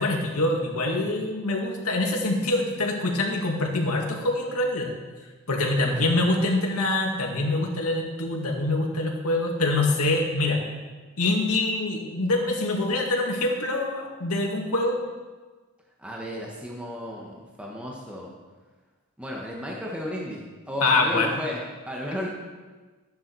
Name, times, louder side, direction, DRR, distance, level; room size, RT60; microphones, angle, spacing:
voice 1, 0.0-4.9 5.5-10.6 11.2-15.0 20.8-21.3, left 2 dB, 90° left, 0 dB, 2.2 m, -25 dB
voice 2, 16.0-18.3 19.2-20.4 20.7-22.3, left 1 dB, 5° right, -3 dB, 1.4 m, -34 dB
13.0 x 10.0 x 4.7 m, 1.3 s
head